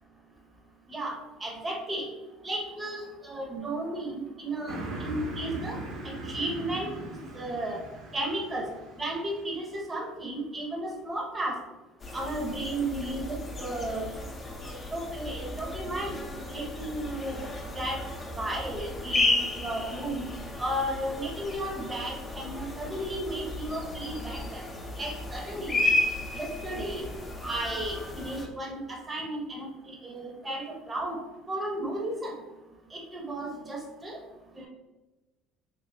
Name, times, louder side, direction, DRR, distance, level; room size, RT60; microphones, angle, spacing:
voice 1, 0.9-2.1 2.4-5.8 6.0-6.9 7.3-7.8 8.1-8.7 9.0-11.6 12.1-14.1 14.6-16.2 16.5-17.4 17.8-18.0 18.4-20.3 20.6-24.7 25.0-26.0 26.3-27.1 27.4-31.2 31.5-32.3 32.9-34.2 34.5-34.7, right 1 dB, 25° right, -1 dB, 1.0 m, -34 dB
Car passing by, 4.7-9.6, right 2 dB, 70° right, 0.8 m, -39 dB
sound 1, 12.0-28.5, left 2 dB, 30° left, 0.8 m, -33 dB
3.2 x 3.0 x 2.7 m, 1.1 s
hypercardioid pair, 70°, 0 cm